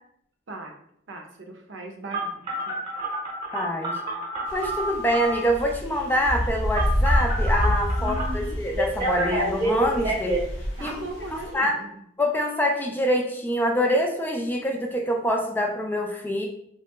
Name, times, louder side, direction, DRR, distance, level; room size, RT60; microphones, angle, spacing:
voice 1, 1.1-2.8 8.0-8.6 10.8-12.0, right 1 dB, 90° right, 2 dB, 0.6 m, -38 dB
Telephone, 2.1-5.5 6.7-8.3 8.8-10.4, right 2 dB, 25° right, 0.8 m, -28 dB
voice 2, 3.5-4.0 4.5-10.4 10.8-10.9 11.5-11.8 12.2-16.5, equal, 10° left, 2 dB, 0.3 m, -25 dB
sound 1, 4.5-11.5, equal, 80° left, 0.7 m, -28 dB
3.5 x 2.8 x 2.2 m, 0.71 s
head